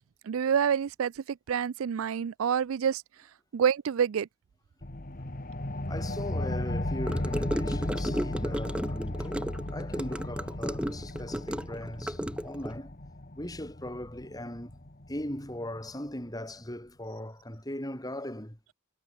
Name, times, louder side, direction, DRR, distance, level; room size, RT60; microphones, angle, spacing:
voice 1, 0.3-3.0 3.5-4.3, right 7 dB, 70° right, 0.4 m, -27 dB
sound 1, 4.8-15.9, left 1 dB, 40° left, 1.9 m, -36 dB
voice 2, 5.9-13.0 13.3-14.8 15.1-18.6, left 1 dB, 15° left, 5.7 m, -39 dB
Gurgling / Car passing by / Sink (filling or washing), 7.1-12.7, equal, 5° right, 1.7 m, -34 dB
head